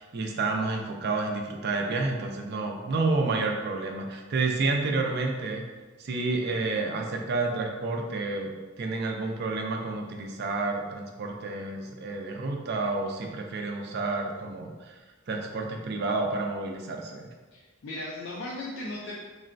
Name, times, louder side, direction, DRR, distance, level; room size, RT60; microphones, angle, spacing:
voice 1, 0.0-5.6 6.0-8.5 8.8-15.0 15.3-17.3, right 3 dB, 55° right, 2 dB, 0.4 m, -30 dB
voice 2, 17.5-19.1, left 1 dB, 65° left, -4 dB, 0.4 m, -37 dB
3.8 x 2.1 x 2.5 m, 1.3 s
head